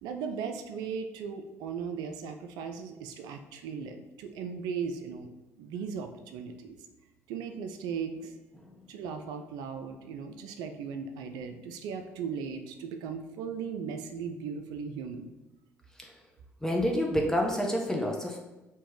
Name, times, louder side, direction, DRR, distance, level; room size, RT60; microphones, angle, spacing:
voice 1, 0.0-5.3 5.6-6.8 7.3-8.3 8.9-15.3, right 6 dB, 65° right, 6 dB, 0.4 m, -37 dB
voice 2, 16.6-18.4, equal, 10° left, 0 dB, 0.7 m, -28 dB
3.0 x 2.9 x 3.6 m, 1.1 s
hypercardioid pair, 50°, 7 cm